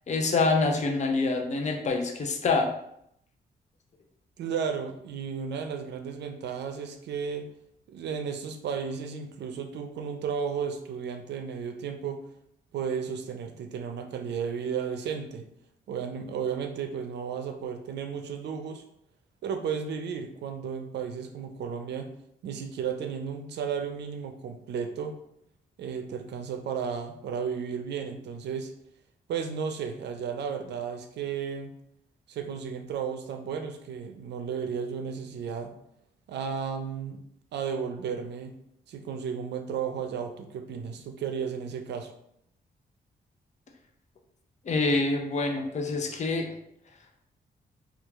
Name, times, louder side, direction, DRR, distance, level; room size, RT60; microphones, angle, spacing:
voice 1, 0.1-2.7 44.7-46.5, left 3 dB, 40° left, 2 dB, 0.6 m, -26 dB
voice 2, 4.4-7.5 7.9-12.2 12.7-15.5 15.9-18.8 19.4-22.1 22.4-25.2 25.8-28.7 29.3-31.7 32.3-35.7 36.3-37.2 37.5-38.5 38.9-42.1, right 6 dB, 80° right, 6 dB, 0.5 m, -33 dB
3.0 x 2.4 x 3.4 m, 0.74 s
cardioid pair, 80°, 17 cm